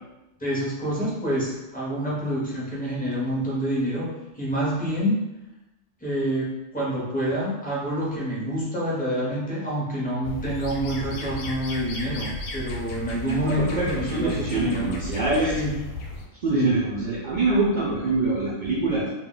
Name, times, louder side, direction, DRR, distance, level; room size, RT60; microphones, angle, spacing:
voice 1, 0.4-4.1 4.4-5.1 6.0-14.9 15.6-15.7 16.5-16.7, equal, 10° left, -6 dB, 0.5 m, -27 dB
sound 1, 10.2-16.3, left 1 dB, 85° left, 1.0 m, -34 dB
voice 2, 13.3-15.6 16.4-19.1, right 2 dB, 80° right, -6 dB, 0.4 m, -24 dB
2.3 x 2.1 x 3.7 m, 0.99 s
omnidirectional pair, 1.4 m